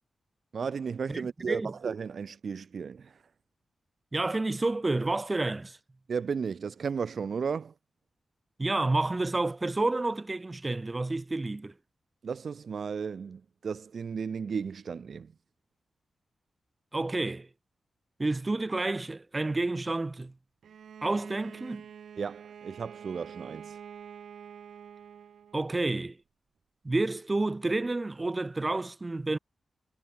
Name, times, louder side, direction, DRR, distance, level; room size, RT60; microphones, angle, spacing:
voice 1, 0.5-3.2 6.1-7.7 12.2-15.3 22.2-23.8, right 6 dB, 60° right, 0.8 m, -34 dB
voice 2, 4.1-5.8 8.6-11.7 16.9-17.5 18.2-20.3 21.0-21.9 25.5-26.2 26.8-29.4, right 2 dB, 25° right, 1.7 m, -29 dB
Bowed string instrument, 20.6-25.8, right 8 dB, 90° right, 1.0 m, -47 dB
wide cardioid pair, 100°, 0 cm